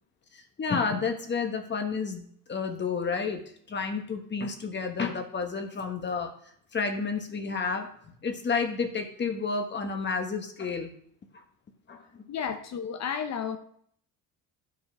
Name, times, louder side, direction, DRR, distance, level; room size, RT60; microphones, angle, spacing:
voice 1, 0.6-3.4 3.7-6.3 6.7-7.9 8.2-10.9 11.9-12.2, left 5 dB, 30° left, 5 dB, 1.3 m, -30 dB
voice 2, 12.3-13.6, left 7 dB, 50° left, 8 dB, 0.8 m, -32 dB
11.0 x 6.0 x 4.8 m, 0.63 s
cardioid pair, 125°, 36 cm